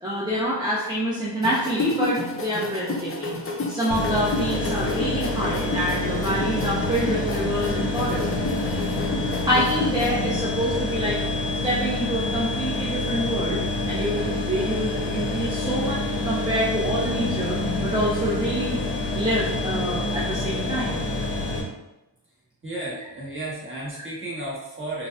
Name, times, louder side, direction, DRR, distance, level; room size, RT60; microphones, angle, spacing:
voice 1, 0.0-8.3 9.4-11.2 11.6-13.6 13.9-18.8 19.1-21.0, equal, 10° right, -7 dB, 0.6 m, -26 dB
sound 1, 1.4-10.1, left 2 dB, 30° left, 0.5 m, -31 dB
sound 2, 3.9-21.6, left 2 dB, 70° left, 0.7 m, -27 dB
voice 2, 15.3-15.7 22.6-25.1, right 1 dB, 30° right, -7 dB, 1.3 m, -34 dB
3.9 x 2.3 x 2.2 m, 0.95 s
cardioid pair, 55°, 43 cm